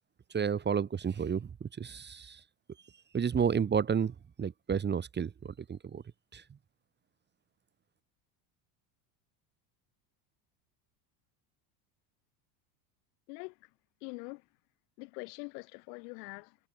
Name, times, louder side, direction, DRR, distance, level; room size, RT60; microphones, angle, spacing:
voice 1, 0.3-2.4 3.1-6.0 6.3-6.4, right 7 dB, 20° right, 1.6 m, -31 dB
voice 2, 13.3-13.7 14.0-14.5 15.0-16.6, left 31 dB, 80° left, 5.7 m, -44 dB
cardioid pair, 135°, 48 cm